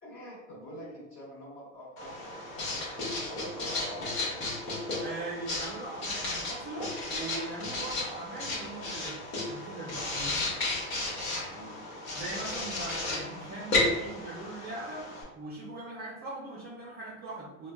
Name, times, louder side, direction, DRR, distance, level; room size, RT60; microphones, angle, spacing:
voice 1, 0.0-4.4 11.5-11.8, equal, 30° left, -6 dB, 1.2 m, -45 dB
Writing, 2.0-15.2, left 2 dB, 65° left, 1.2 m, -34 dB
voice 2, 5.0-9.2 9.5-10.4 12.1-15.1 15.4-17.7, right 2 dB, 25° right, -5 dB, 0.5 m, -40 dB
3.1 x 2.2 x 2.2 m, 1.0 s
supercardioid pair, 125°, 40 cm